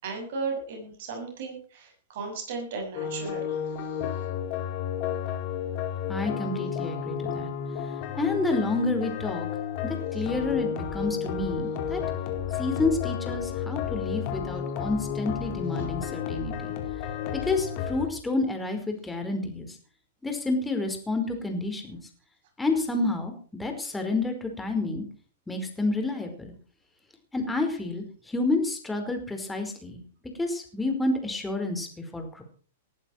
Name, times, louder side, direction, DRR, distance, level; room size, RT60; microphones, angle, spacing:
voice 1, 0.0-3.5, right 4 dB, 60° right, 2 dB, 7.1 m, -35 dB
sound 1, 2.9-18.1, left 8 dB, 45° left, 4.5 m, -32 dB
voice 2, 6.1-7.5 8.1-9.5 9.8-12.0 12.6-16.7 17.3-19.7 20.2-22.0 22.6-23.3 23.6-25.0 25.5-26.5 27.3-30.0 30.4-31.9 32.1-32.4, left 2 dB, 10° left, 4 dB, 4.9 m, -29 dB
19.5 x 11.5 x 4.6 m, 0.42 s
hypercardioid pair, 110°, 0 cm